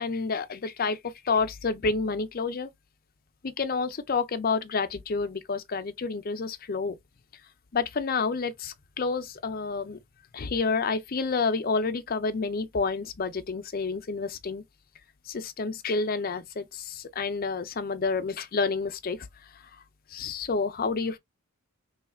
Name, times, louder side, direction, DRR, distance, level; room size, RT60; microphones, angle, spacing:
voice 1, 0.0-2.7 3.4-7.0 7.7-10.0 10.3-14.6 15.3-19.2 20.1-21.2, left 4 dB, 45° left, 0.5 m, -29 dB
3.1 x 2.3 x 4.2 m
head